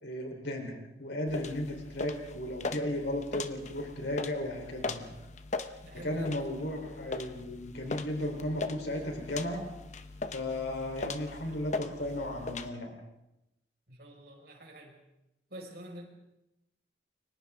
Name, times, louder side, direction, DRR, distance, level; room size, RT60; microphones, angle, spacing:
voice 1, 0.0-5.1 5.9-9.6 10.3-12.9, left 1 dB, 75° left, 2 dB, 3.9 m, -35 dB
sound 1, 1.3-12.7, left 3 dB, 40° left, 0.9 m, -40 dB
voice 2, 5.8-6.3 13.9-15.0 15.5-16.0, right 1 dB, 60° right, 0 dB, 5.4 m, -47 dB
29.5 x 24.0 x 3.7 m, 0.92 s
head